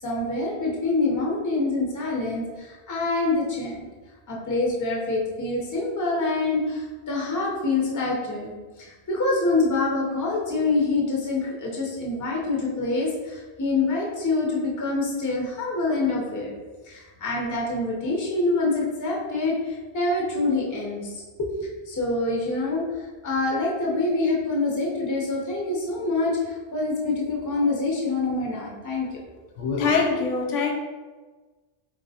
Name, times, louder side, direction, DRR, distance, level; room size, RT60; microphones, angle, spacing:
voice 1, 0.0-3.8 4.3-16.5 16.8-21.1 21.6-29.2, left 3 dB, 20° left, -3 dB, 0.5 m, -26 dB
voice 2, 29.6-30.7, left 4 dB, 90° left, 1 dB, 1.0 m, -23 dB
3.8 x 3.0 x 2.7 m, 1.3 s
omnidirectional pair, 1.2 m